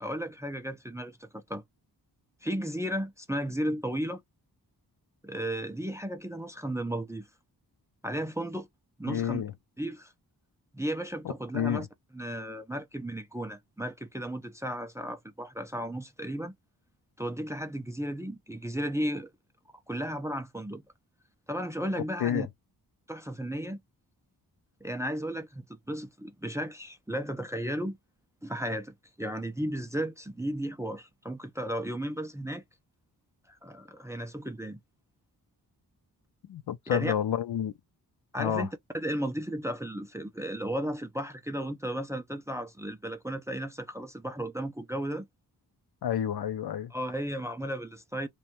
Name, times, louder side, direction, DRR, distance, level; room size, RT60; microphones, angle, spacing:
voice 1, 0.0-1.6 2.4-4.2 5.2-7.3 8.0-8.7 9.0-9.4 9.8-10.1 10.7-11.9 12.1-16.5 17.2-19.3 19.9-20.8 21.5-22.5 23.1-23.8 24.8-28.0 28.4-32.6 33.5-34.8 36.9-37.1 38.3-38.7 38.9-45.3 46.9-48.3, right 1 dB, 10° right, 0.4 m, -34 dB
voice 2, 9.1-9.5 11.5-11.9 22.2-22.5 36.5-37.7 38.4-38.7 46.0-46.9, left 10 dB, 80° left, 0.6 m, -29 dB
2.6 x 2.2 x 3.0 m
wide cardioid pair, 115°, 38 cm